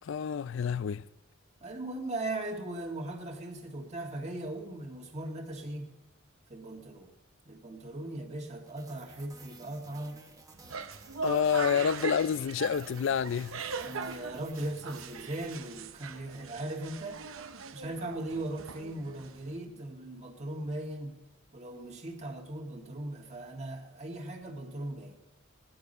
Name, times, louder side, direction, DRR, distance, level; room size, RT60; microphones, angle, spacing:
voice 1, 0.0-1.0 11.2-13.6, left 7 dB, 60° left, 0.4 m, -28 dB
voice 2, 1.6-5.9 6.5-7.1 7.5-10.2 13.8-17.2 17.7-21.2 21.5-25.2, right 1 dB, 35° right, 1.9 m, -38 dB
sound 1, 8.7-16.2, right 3 dB, 15° right, 1.1 m, -54 dB
sound 2, 10.5-19.6, right 5 dB, 75° right, 0.7 m, -41 dB
18.0 x 10.5 x 5.3 m
head